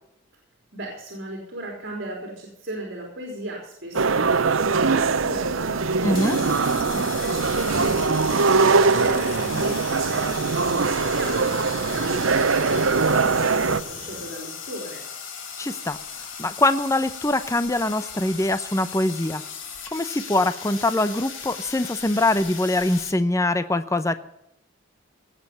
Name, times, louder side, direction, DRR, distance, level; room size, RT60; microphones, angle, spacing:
voice 1, 0.7-15.0, right 1 dB, 55° right, 0 dB, 3.9 m, -36 dB
sound 1, 3.9-13.8, right 4 dB, 85° right, 0.8 m, -22 dB
sound 2, 4.1-14.3, right 1 dB, 30° right, 2.9 m, -41 dB
voice 2, 6.0-6.4 15.6-16.0 16.4-19.4 19.9-24.1, left 2 dB, 15° left, 12 dB, 0.7 m, -23 dB
sound 3, 6.1-23.1, left 6 dB, 75° left, 2.6 m, -37 dB
18.0 x 7.7 x 6.9 m, 0.80 s
head